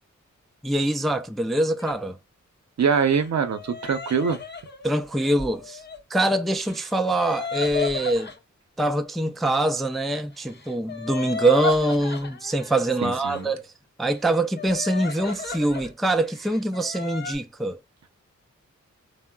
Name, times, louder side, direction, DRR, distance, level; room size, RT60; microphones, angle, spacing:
voice 1, 0.6-2.2 4.8-5.8 6.1-8.3 8.8-13.7 14.0-17.8, right 1 dB, ahead, 0.4 m, -24 dB
sound 1, 1.8-2.0 2.9-6.0 6.5-8.4 10.4-13.5 14.0-15.9 16.2-17.4, left 5 dB, 35° left, 0.8 m, -35 dB
voice 2, 2.8-4.4 13.0-13.5, right 6 dB, 60° right, 0.7 m, -23 dB
3.5 x 2.0 x 2.2 m
cardioid pair, 45°, 30 cm